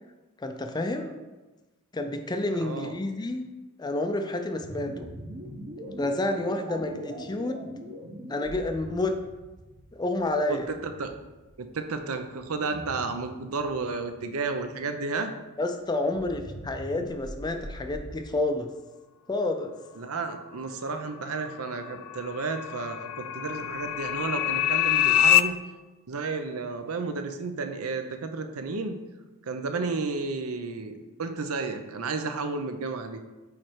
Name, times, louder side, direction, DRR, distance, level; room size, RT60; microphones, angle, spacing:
voice 1, 0.4-1.2 1.9-3.5 3.8-5.1 6.0-7.7 8.3-9.2 9.9-10.7 15.6-18.7 19.3-19.7, left 2 dB, 20° left, 6 dB, 0.4 m, -29 dB
voice 2, 2.5-2.9 10.5-11.1 11.6-15.3 20.0-25.5 26.1-28.9 29.4-33.2, right 4 dB, 75° right, 7 dB, 0.6 m, -32 dB
sound 1, 4.6-14.7 16.0-18.2, equal, 40° right, 1.0 m, -42 dB
sound 2, 21.1-25.4, left 12 dB, 85° left, 0.3 m, -25 dB
8.5 x 3.3 x 4.5 m, 1.1 s
head